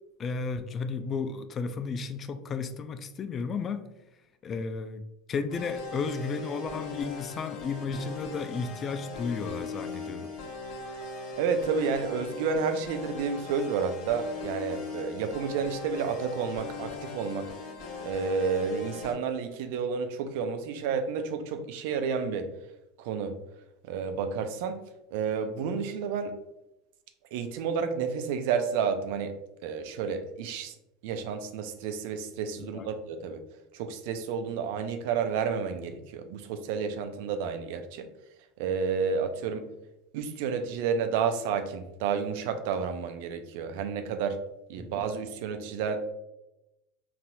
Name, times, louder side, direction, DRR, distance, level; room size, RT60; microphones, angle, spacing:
voice 1, 0.2-3.9 4.4-5.0 5.3-10.3 32.7-32.9 44.8-44.9, left 5 dB, 35° left, 10 dB, 0.3 m, -33 dB
sound 1, 5.5-19.1, left 4 dB, 60° left, 0.8 m, -39 dB
voice 2, 11.4-17.5 18.0-22.5 23.0-23.3 23.9-24.8 25.1-26.4 27.3-29.3 29.6-30.7 31.0-33.4 33.7-38.1 38.6-39.6 40.1-44.4 44.7-46.0, right 6 dB, 70° right, 8 dB, 0.4 m, -30 dB
4.1 x 2.7 x 2.2 m, 0.91 s
hypercardioid pair, 85°, 0 cm